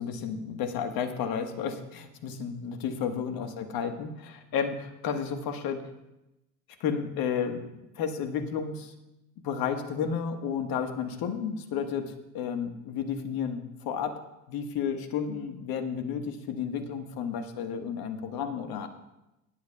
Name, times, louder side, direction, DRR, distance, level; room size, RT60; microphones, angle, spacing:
voice 1, 0.0-5.8 6.8-7.6 8.0-8.9 9.4-14.1 14.5-18.9, left 7 dB, 50° left, 7 dB, 1.5 m, -32 dB
19.5 x 10.5 x 2.3 m, 0.93 s
hypercardioid pair, 70°, 46 cm